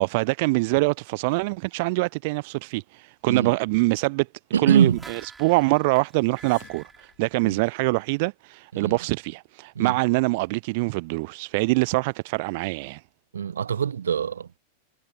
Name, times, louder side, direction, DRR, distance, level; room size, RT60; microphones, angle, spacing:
voice 1, 0.0-4.3 4.6-13.0, right 26 dB, 50° right, 0.5 m, -24 dB
voice 2, 4.5-5.0 7.4-7.6 8.7-9.0 9.8-9.9 13.3-14.5, right 8 dB, 70° right, 0.8 m, -23 dB
sound 1, 4.7-8.2 8.5-8.6, right 4 dB, 10° right, 6.7 m, -48 dB
sound 2, 6.1-8.0, left 29 dB, 45° left, 3.4 m, -57 dB
figure-of-eight pair, 90°, 0 cm